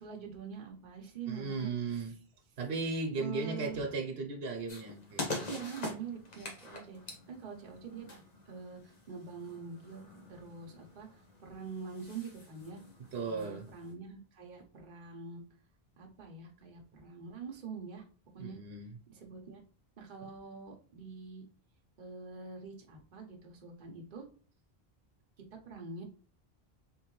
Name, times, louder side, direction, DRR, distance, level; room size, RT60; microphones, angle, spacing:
voice 1, 0.0-2.0 3.2-3.8 5.5-7.0 7.3-12.8 13.2-15.4 16.0-18.0 18.3-18.6 19.1-19.6 20.0-21.5 22.0-24.3 25.6-26.0, right 5 dB, 55° right, 0.9 m, -45 dB
voice 2, 1.3-2.1 2.6-5.5 10.7-10.9 13.1-13.7 18.4-19.0, right 4 dB, 90° right, 1.1 m, -36 dB
sound 1, 4.7-13.9, left 2 dB, 45° left, 1.1 m, -45 dB
3.6 x 3.1 x 3.0 m
omnidirectional pair, 1.0 m